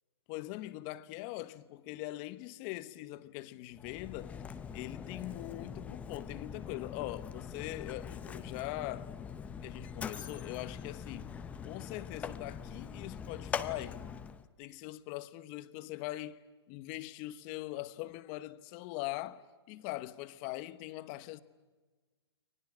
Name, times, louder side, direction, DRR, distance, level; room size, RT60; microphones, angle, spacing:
voice 1, 0.3-9.1 9.6-11.4 11.6-14.0 14.6-19.4 19.7-21.4, left 17 dB, 30° left, 1.1 m, -42 dB
Mechanisms, 3.7-14.5, left 7 dB, 10° left, 0.8 m, -43 dB
30.0 x 24.0 x 6.3 m
hypercardioid pair, 145°, 14 cm